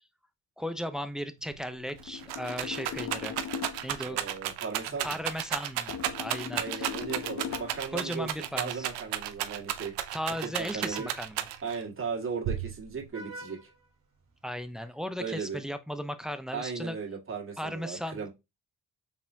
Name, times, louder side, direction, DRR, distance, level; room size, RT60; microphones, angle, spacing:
voice 1, 0.6-3.3 3.8-4.2 5.0-6.9 7.9-8.8 10.1-11.4 14.4-17.0 17.6-18.3, equal, ahead, 0.5 m, -36 dB
Rattle, 1.5-1.6 1.9-11.8 12.4-13.1, right 12 dB, 85° right, 0.6 m, -33 dB
sound 1, 1.9-4.0 5.9-7.9, left 8 dB, 45° left, 0.5 m, -39 dB
voice 2, 4.0-5.2 6.6-9.9 10.4-11.1 11.6-13.6 15.2-15.6 16.5-18.3, right 5 dB, 30° right, 1.7 m, -37 dB
Vehicle horn car horn honking, 6.7-14.7, right 2 dB, 55° right, 1.8 m, -53 dB
4.2 x 3.5 x 2.7 m
supercardioid pair, 65°, 39 cm